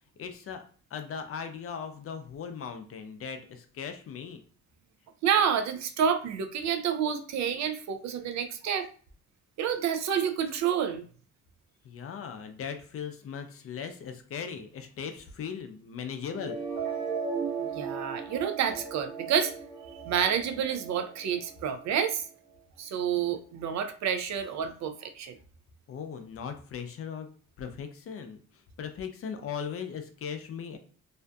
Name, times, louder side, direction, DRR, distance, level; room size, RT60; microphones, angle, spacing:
voice 1, 0.2-0.6 0.9-4.4 11.8-16.6 25.9-27.3 27.6-30.8, left 7 dB, 50° left, 7 dB, 0.5 m, -38 dB
voice 2, 5.2-8.9 9.6-11.0 17.6-19.5 20.0-22.2 22.8-25.4, right 8 dB, 65° right, 8 dB, 0.5 m, -29 dB
sound 1, 16.2-22.2, right 6 dB, 30° right, 1.2 m, -37 dB
2.5 x 2.4 x 2.2 m, 0.43 s
cardioid pair, 90°, 30 cm